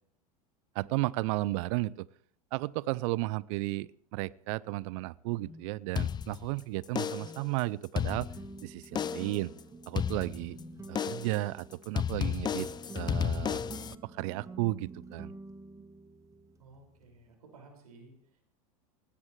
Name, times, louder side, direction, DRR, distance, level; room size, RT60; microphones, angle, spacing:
voice 1, 0.7-2.1 2.5-8.3 8.6-9.5 9.9-10.6 10.9-12.7 12.9-13.6 14.0-15.3, right 20 dB, 60° right, 22 dB, 0.6 m, -33 dB
sound 1, 5.4-5.7 7.1-7.5 8.9-9.2 10.5-10.8, left 4 dB, 60° left, 7.0 m, -51 dB
sound 2, 6.0-6.6 7.0-7.5 7.8-8.6 9.0-9.4 10.0-10.6 11.0-11.4 12.0-14.0, left 8 dB, 20° left, 0.6 m, -33 dB
sound 3, 8.1-17.3, right 3 dB, 15° right, 1.7 m, -48 dB
voice 2, 16.6-18.4, right 3 dB, 80° right, 2 dB, 5.9 m, -55 dB
19.5 x 16.0 x 3.3 m, 0.62 s
hypercardioid pair, 85°, 19 cm